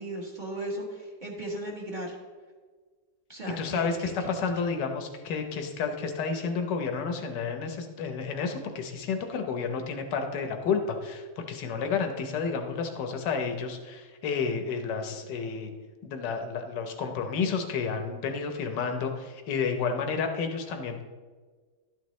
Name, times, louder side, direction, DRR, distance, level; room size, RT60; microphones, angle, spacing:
voice 1, 0.0-2.1 3.3-3.9 4.2-4.3, right 1 dB, 30° right, -1 dB, 1.5 m, -36 dB
voice 2, 3.6-15.7 16.0-21.0, left 5 dB, 80° left, 5 dB, 1.5 m, -31 dB
12.0 x 9.1 x 3.1 m, 1.5 s
omnidirectional pair, 1.8 m